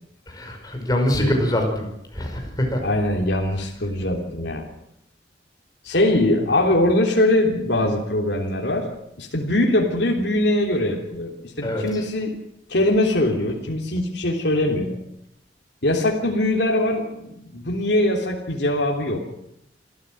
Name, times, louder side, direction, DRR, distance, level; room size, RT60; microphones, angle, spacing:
voice 1, 0.3-1.9 2.1-2.8 11.6-12.0, left 1 dB, 20° left, 2 dB, 5.6 m, -24 dB
voice 2, 2.8-4.7 5.9-8.9 9.2-12.4 12.7-15.0 15.8-19.2, left 1 dB, 65° left, 0 dB, 3.4 m, -22 dB
26.0 x 14.0 x 7.8 m, 0.80 s
head